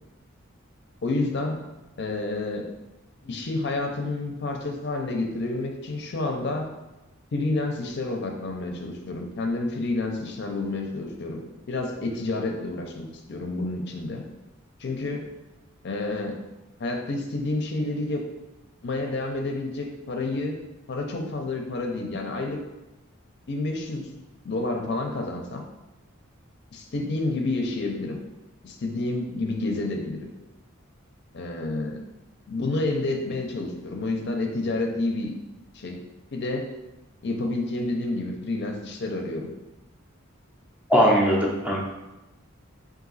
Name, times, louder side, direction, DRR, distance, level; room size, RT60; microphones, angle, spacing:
voice 1, 1.0-1.6 2.0-2.7 3.2-6.7 7.3-11.4 11.7-14.3 14.8-15.2 15.8-16.4 16.8-18.3 18.8-20.6 20.9-22.6 23.5-25.6 26.7-28.2 28.6-30.2 31.3-32.0 32.5-35.3 35.7-36.0 36.3-36.7 37.2-39.5, left 2 dB, 55° left, 2 dB, 0.5 m, -29 dB
voice 2, 40.9-41.8, equal, 5° right, -3 dB, 0.5 m, -20 dB
3.8 x 2.6 x 3.9 m, 1.0 s
head